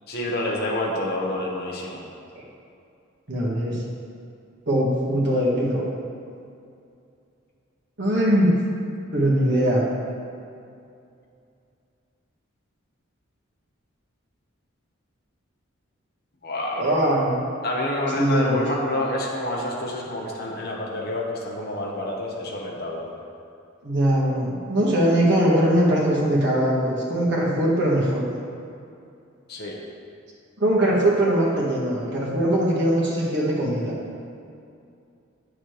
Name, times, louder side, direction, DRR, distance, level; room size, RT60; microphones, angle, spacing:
voice 1, 0.1-2.0 16.4-16.9 17.6-23.1 29.5-29.8, left 1 dB, 50° left, -2 dB, 1.1 m, -28 dB
voice 2, 3.3-3.8 4.7-5.8 8.0-8.6 9.1-9.8 16.8-17.4 18.1-18.6 23.8-28.2 30.6-33.9, right 1 dB, 60° right, -5 dB, 1.6 m, -21 dB
8.5 x 6.3 x 3.2 m, 2.5 s
head